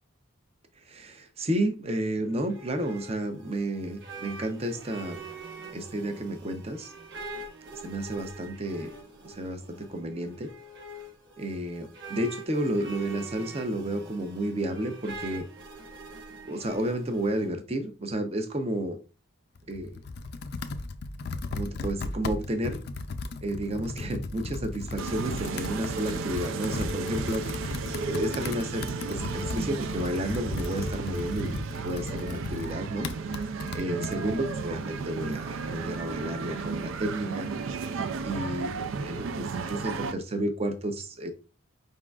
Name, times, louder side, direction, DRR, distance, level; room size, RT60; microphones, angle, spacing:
voice 1, 0.9-5.2 5.7-6.9 7.7-8.9 9.2-10.5 11.4-15.5 16.5-19.0 19.7-20.0 21.5-22.8 23.4-27.6 28.0-33.1 33.3-33.4 33.7-37.5 38.2-38.7 39.0-41.3, right 1 dB, 30° right, 7 dB, 0.6 m, -31 dB
sound 1, 2.2-17.5, right 3 dB, 55° right, 0.9 m, -44 dB
Computer keyboard, 19.6-34.2, left 3 dB, 50° left, 0.4 m, -36 dB
sound 2, 25.0-40.1, right 4 dB, 75° right, 0.4 m, -34 dB
5.3 x 3.7 x 2.3 m, 0.33 s
head